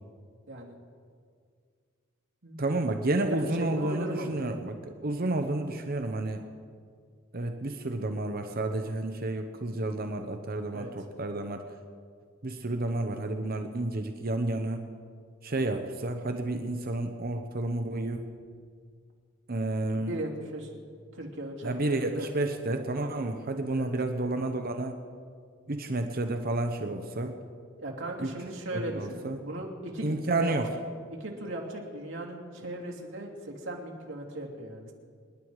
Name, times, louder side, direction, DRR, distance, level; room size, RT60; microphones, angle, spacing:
voice 1, 2.6-6.4 7.3-11.6 12.4-14.8 15.4-18.2 19.5-20.1 21.6-25.0 25.7-27.3 28.2-28.3 28.7-29.4 30.0-30.7, right 2 dB, 50° right, 6 dB, 1.0 m, -31 dB
voice 2, 3.3-4.3 10.7-10.9 19.9-20.7 21.1-22.3 23.7-23.9 27.8-30.8 31.1-34.9, right 1 dB, 70° right, -1 dB, 2.9 m, -37 dB
27.0 x 10.5 x 4.9 m, 2.1 s
head